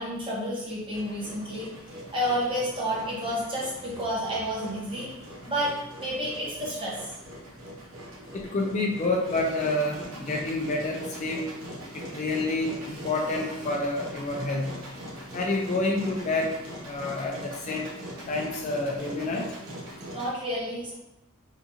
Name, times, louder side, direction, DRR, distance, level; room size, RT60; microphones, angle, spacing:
voice 1, 0.0-5.7 6.0-7.2 20.1-20.9, equal, 25° right, -5 dB, 1.0 m, -30 dB
Engine, 0.9-20.3, equal, 90° right, 0.9 m, -41 dB
voice 2, 8.3-11.4 12.1-14.8 15.3-16.5 16.9-17.9 18.3-19.4, left 2 dB, 35° left, 0 dB, 0.4 m, -28 dB
3.7 x 2.5 x 2.8 m, 0.91 s
head